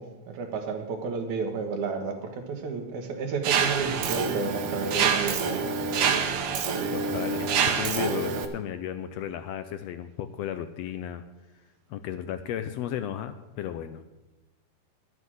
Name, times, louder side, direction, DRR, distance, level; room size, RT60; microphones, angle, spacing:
voice 1, 0.0-5.9, right 5 dB, 85° right, 4 dB, 2.8 m, -32 dB
Mechanisms, 3.4-8.4, right 6 dB, 60° right, 1.6 m, -26 dB
voice 2, 6.9-11.2 11.9-14.0, left 10 dB, 80° left, 10 dB, 1.6 m, -34 dB
11.5 x 8.1 x 7.7 m, 1.0 s
omnidirectional pair, 3.3 m